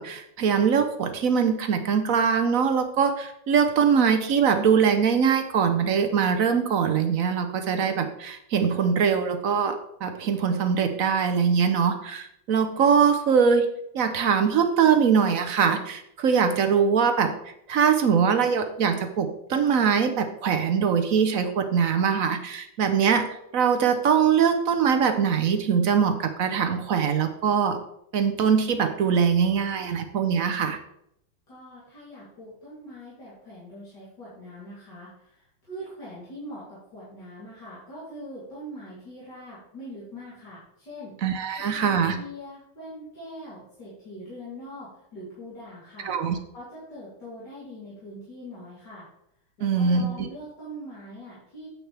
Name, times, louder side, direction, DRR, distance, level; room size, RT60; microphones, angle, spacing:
voice 1, 0.0-13.7 13.9-17.3 17.7-23.2 23.5-27.8 28.1-30.8 41.2-42.2 46.0-46.4 49.6-50.3, right 6 dB, 60° right, 8 dB, 0.9 m, -22 dB
voice 2, 31.5-41.2 41.6-46.1 46.5-49.1 49.6-51.7, equal, 55° left, -9 dB, 3.6 m, -42 dB
9.4 x 8.0 x 3.3 m, 0.76 s
omnidirectional pair, 2.2 m